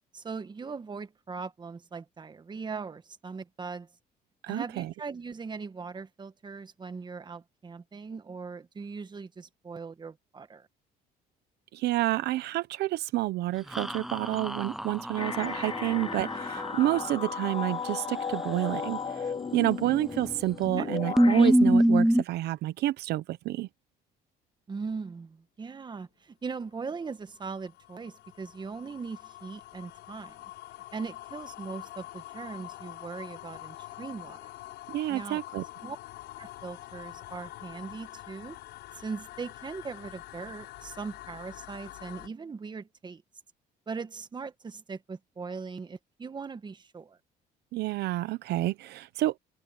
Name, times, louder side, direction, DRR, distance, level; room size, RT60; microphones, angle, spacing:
voice 1, 0.1-3.9 4.5-10.7 20.8-20.9 24.7-30.4 30.9-34.5 35.1-35.4 35.8-36.0 36.4-38.6 38.9-43.2 43.9-47.2, right 5 dB, 25° right, 1.6 m, -40 dB
voice 2, 4.4-4.9 11.7-23.7 34.9-35.6 47.7-49.4, right 16 dB, 75° right, 0.9 m, -29 dB
sound 1, 13.7-17.1 19.8-20.3 20.6-20.7 21.2-22.2, equal, ahead, 0.5 m, -25 dB
sound 2, 15.2-21.5, left 6 dB, 35° left, 5.0 m, -35 dB
sound 3, 26.7-42.3, left 17 dB, 85° left, 5.2 m, -46 dB
cardioid pair, 110°, 17 cm